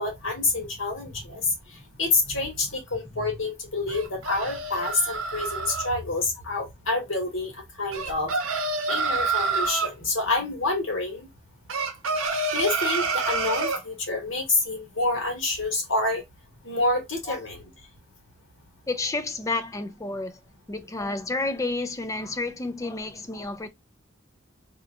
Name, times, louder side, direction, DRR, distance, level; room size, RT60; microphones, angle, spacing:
voice 1, 0.0-1.4 2.0-7.5 7.8-8.3 8.9-11.3 12.5-16.2 16.6-17.6, left 2 dB, 70° left, 1.5 m, -27 dB
sound 1, 3.9-5.9 7.9-9.9 11.7-13.8, right 3 dB, 85° right, 0.8 m, -27 dB
voice 2, 18.9-20.4 20.7-23.7, left 3 dB, 15° left, 0.4 m, -30 dB
2.9 x 2.4 x 3.5 m
head